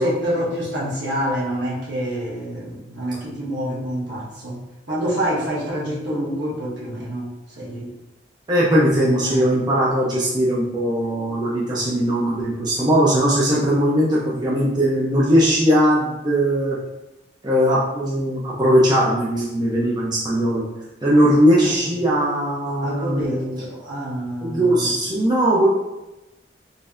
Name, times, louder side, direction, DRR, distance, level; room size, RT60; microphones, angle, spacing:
voice 1, 0.0-4.6 4.9-7.9 9.2-9.5 11.8-12.0 21.6-22.0 22.8-24.9, equal, 65° right, -7 dB, 1.3 m, -27 dB
voice 2, 8.5-16.8 17.4-20.6 21.0-23.6 24.4-25.7, equal, 25° right, -6 dB, 0.6 m, -19 dB
4.0 x 2.6 x 2.5 m, 0.97 s
head